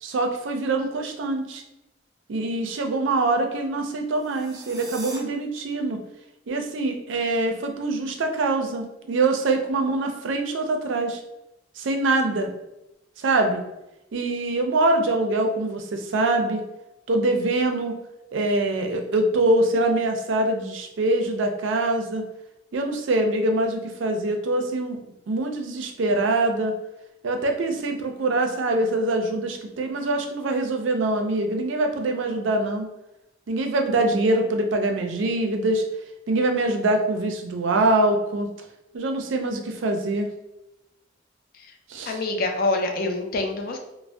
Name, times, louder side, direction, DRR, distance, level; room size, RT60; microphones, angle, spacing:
voice 1, 0.0-1.6 2.3-6.0 6.5-11.2 11.8-12.5 13.2-13.6 14.1-16.6 17.1-18.0 18.3-22.2 22.7-25.0 25.3-26.7 27.2-32.9 33.5-35.8 36.3-38.5 38.9-40.3 41.9-42.2, right 2 dB, 90° right, 4 dB, 0.4 m, -24 dB
sound 1, 4.1-5.2, right 3 dB, 20° right, 0.4 m, -40 dB
voice 2, 42.1-43.8, left 2 dB, 50° left, 3 dB, 0.4 m, -25 dB
2.5 x 2.0 x 3.3 m, 0.93 s
head